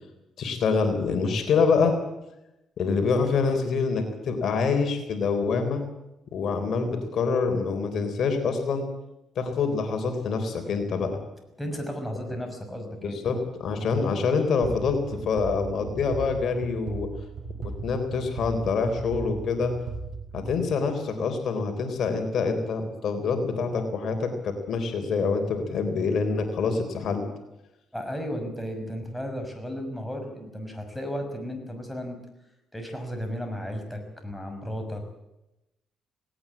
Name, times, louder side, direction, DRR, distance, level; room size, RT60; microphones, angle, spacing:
voice 1, 0.4-2.0 2.8-5.8 6.3-8.9 9.4-11.2 13.0-17.1 17.6-19.7 20.3-27.2, left 4 dB, 65° left, 6 dB, 3.8 m, -26 dB
voice 2, 11.6-13.2 13.9-14.0 27.9-32.2 32.7-35.0, equal, 5° left, 4 dB, 6.1 m, -34 dB
sound 1, 14.6-21.2, right 4 dB, 60° right, 6.7 m, -37 dB
18.5 x 18.0 x 8.6 m, 0.93 s
cardioid pair, 90°, 0 cm